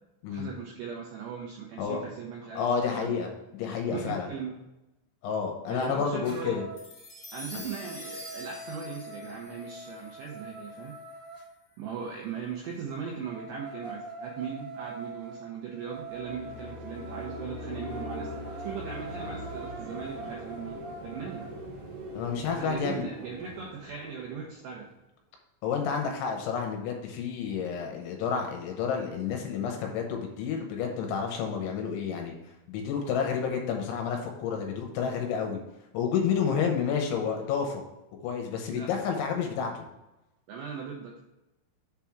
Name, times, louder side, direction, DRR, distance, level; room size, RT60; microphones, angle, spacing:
voice 1, 0.3-3.3 3.9-4.6 5.7-6.6 7.3-11.0 11.8-18.3 18.6-21.6 22.5-24.9 38.7-38.9 40.5-41.2, right 6 dB, 85° right, -1 dB, 2.4 m, -39 dB
voice 2, 2.6-4.3 5.2-6.6 7.5-7.6 22.1-23.1 25.6-32.3 32.7-35.6 35.9-37.8 38.2-39.8, left 6 dB, 75° left, 2 dB, 3.0 m, -30 dB
sound 1, 6.2-6.9 7.3-11.5 12.9-21.5, right 2 dB, 30° right, 2.4 m, -44 dB
sound 2, 6.8-11.3, left 1 dB, 30° left, 2.3 m, -47 dB
sound 3, 15.9-24.9, equal, 60° right, 2.5 m, -42 dB
7.3 x 3.6 x 5.8 m, 0.94 s
omnidirectional pair, 5.9 m